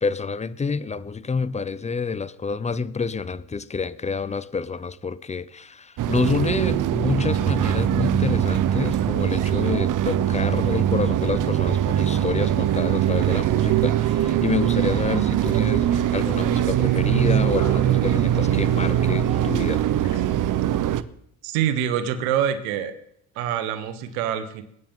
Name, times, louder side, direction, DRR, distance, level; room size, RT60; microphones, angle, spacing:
voice 1, 0.0-19.8, left 5 dB, 15° left, 0.7 m, -28 dB
sound 1, 6.0-21.0, right 11 dB, 50° right, 0.8 m, -22 dB
sound 2, 12.6-20.2, left 5 dB, 55° left, 4.1 m, -49 dB
voice 2, 21.4-22.9 23.3-24.6, right 9 dB, 90° right, 1.6 m, -25 dB
22.0 x 9.6 x 3.8 m
supercardioid pair, 85°, 41 cm